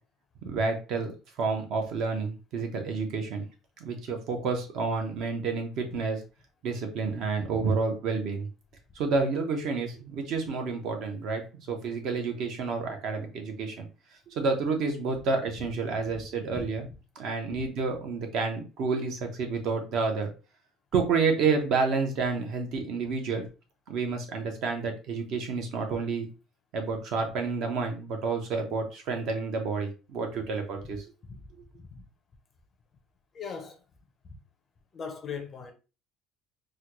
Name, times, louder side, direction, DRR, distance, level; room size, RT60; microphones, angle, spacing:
voice 1, 0.4-1.1 1.4-3.4 3.8-6.2 6.6-8.5 9.0-11.4 11.7-13.9 14.3-16.9 17.2-20.3 20.9-23.4 23.9-26.3 26.7-31.0, right 4 dB, 50° right, 0.8 m, -29 dB
voice 2, 33.3-33.8 34.2-34.4 34.9-35.7, left 6 dB, 25° left, 0.5 m, -39 dB
4.2 x 2.2 x 3.0 m
cardioid pair, 180°, 0 cm